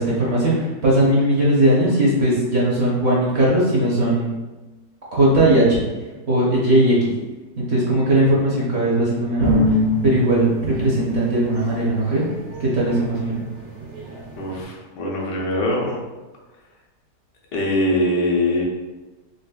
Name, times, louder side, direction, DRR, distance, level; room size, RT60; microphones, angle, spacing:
voice 1, 0.0-4.3 5.1-5.8 6.3-7.1 7.6-9.8 10.0-12.3 12.6-13.4, right 1 dB, 55° right, -6 dB, 0.7 m, -18 dB
sound 1, 9.4-14.6, equal, 90° right, 1.8 m, -26 dB
voice 2, 14.3-16.0 17.5-18.6, left 1 dB, 75° left, -2 dB, 1.4 m, -22 dB
4.1 x 3.4 x 2.2 m, 1.2 s
omnidirectional pair, 1.9 m